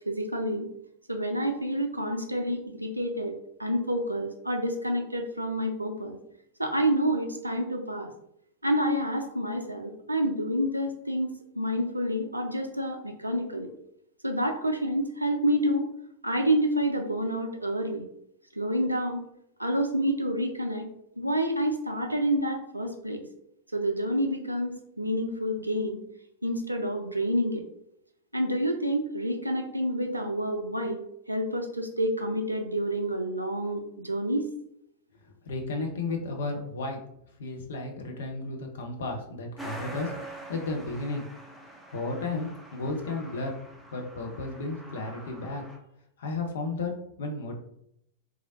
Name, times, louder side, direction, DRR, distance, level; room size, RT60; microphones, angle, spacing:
voice 1, 0.1-0.7 1.1-3.3 3.6-6.1 6.6-8.1 8.6-11.3 11.6-13.7 14.2-15.9 16.2-18.0 18.5-19.2 19.6-20.9 21.2-23.2 23.7-26.0 26.4-27.6 28.3-31.0 31.3-34.5, equal, 85° right, 4 dB, 0.4 m, -28 dB
voice 2, 35.4-37.0 37.4-40.1 40.5-41.2 41.9-43.5 43.9-45.6 46.2-46.9 47.2-47.5, left 3 dB, 60° left, 2 dB, 0.6 m, -33 dB
Truck, 39.6-45.8, right 1 dB, 5° right, 0.5 m, -45 dB
3.1 x 2.4 x 2.5 m, 0.76 s
figure-of-eight pair, 90°, 0 cm